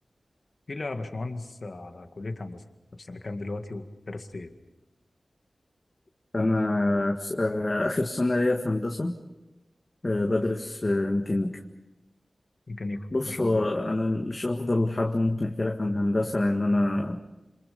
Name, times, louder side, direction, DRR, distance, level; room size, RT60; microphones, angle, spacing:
voice 1, 0.7-2.6 3.0-4.5 12.7-13.7, left 2 dB, 60° left, 6 dB, 2.0 m, -36 dB
voice 2, 6.3-9.2 10.0-11.6 13.1-17.2, left 2 dB, 35° left, 1 dB, 1.8 m, -26 dB
28.0 x 27.0 x 5.4 m, 1.0 s
wide cardioid pair, 75°, 0 cm